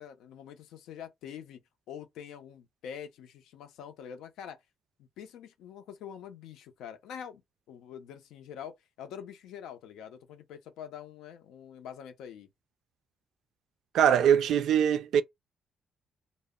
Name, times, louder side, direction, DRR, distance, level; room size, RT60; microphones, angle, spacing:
voice 1, 0.0-4.6 5.0-7.4 7.7-12.5, left 8 dB, 85° left, 0.5 m, -45 dB
voice 2, 13.9-15.2, right 9 dB, 75° right, 0.3 m, -22 dB
2.1 x 2.0 x 3.5 m
cardioid pair, 90°, 0 cm